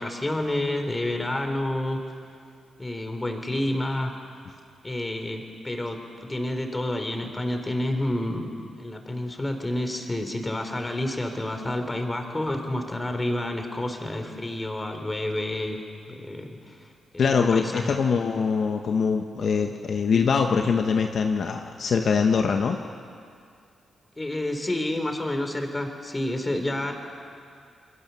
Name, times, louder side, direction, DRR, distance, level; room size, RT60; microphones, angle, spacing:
voice 1, 0.0-2.0 2.8-4.1 4.8-15.8 16.1-16.8 17.4-18.0 24.2-26.9, left 1 dB, 20° left, 5 dB, 3.7 m, -29 dB
voice 2, 17.2-22.8, left 5 dB, 60° left, 4 dB, 1.2 m, -23 dB
28.0 x 22.0 x 7.1 m, 2.3 s
cardioid pair, 75°, 0 cm